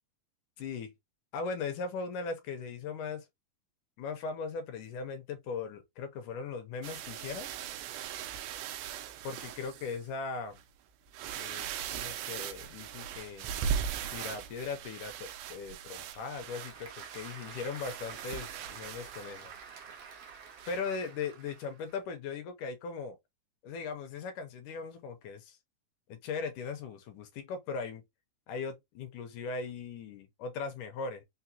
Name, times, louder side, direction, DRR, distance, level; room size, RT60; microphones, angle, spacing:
voice 1, 0.6-0.9 1.3-3.3 4.0-7.5 9.2-10.6 11.3-13.5 14.1-19.5 20.7-23.2 23.6-25.6 26.1-28.0 28.5-31.2, left 5 dB, 75° left, 2.0 m, -39 dB
sound 1, 6.8-10.0 10.6-10.7 11.1-19.6 20.6-20.8, right 8 dB, 85° right, 2.2 m, -39 dB
Applause / Crowd, 15.5-22.0, right 7 dB, 65° right, 1.4 m, -49 dB
5.8 x 2.1 x 2.7 m
omnidirectional pair, 4.1 m